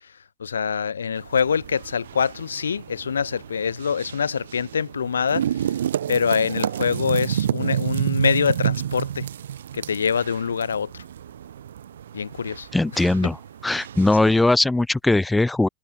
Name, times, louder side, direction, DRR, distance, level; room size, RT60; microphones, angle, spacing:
voice 1, 0.4-5.8 6.1-9.3 9.7-11.0 12.1-12.7 13.2-13.3, left 6 dB, 70° left, 3.5 m, -25 dB
sound 1, 1.2-14.4, right 9 dB, 65° right, 4.0 m, -30 dB
voice 2, 12.7-13.4 13.6-15.7, left 2 dB, 5° left, 4.4 m, -19 dB
figure-of-eight pair, 90°, 0 cm